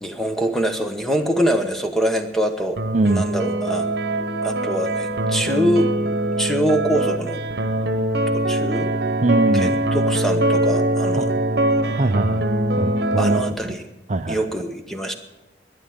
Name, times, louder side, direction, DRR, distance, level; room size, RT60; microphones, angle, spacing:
voice 1, 0.0-2.8 3.1-3.9 4.4-5.9 6.4-7.4 8.3-8.9 9.5-11.3 13.2-13.8 14.3-15.1, equal, ahead, 5 dB, 1.1 m, -24 dB
sound 1, 2.8-13.5, right 1 dB, 70° right, 1.1 m, -22 dB
voice 2, 2.9-3.2 9.2-9.7 11.2-11.3 11.9-12.5 12.8-13.7 14.1-14.4, right 2 dB, 40° right, 8 dB, 0.6 m, -21 dB
12.5 x 10.0 x 9.5 m, 0.98 s
head